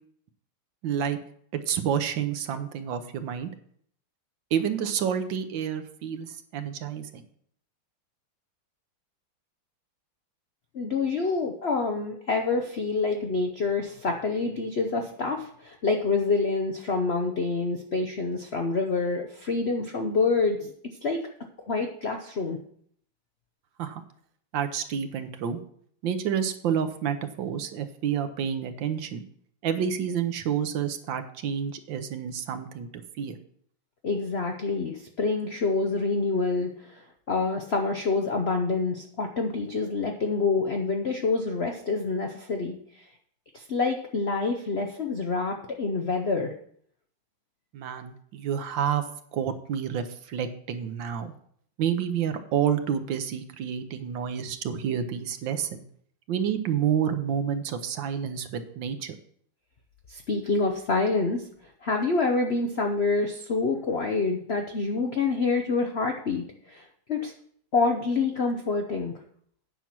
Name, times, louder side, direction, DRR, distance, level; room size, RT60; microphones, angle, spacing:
voice 1, 0.8-1.2 1.7-3.5 4.5-7.2 23.8-24.0 24.5-25.6 26.0-29.2 29.6-33.4 47.7-49.0 49.3-51.3 51.8-55.8 56.3-59.1, right 8 dB, 65° right, 9 dB, 1.4 m, -29 dB
voice 2, 10.7-20.7 21.0-21.2 21.7-22.6 34.0-43.1 43.5-46.5 60.1-61.4 61.8-67.3 67.7-69.1, left 3 dB, 90° left, 3 dB, 0.5 m, -27 dB
9.2 x 5.8 x 6.0 m, 0.62 s
omnidirectional pair, 2.3 m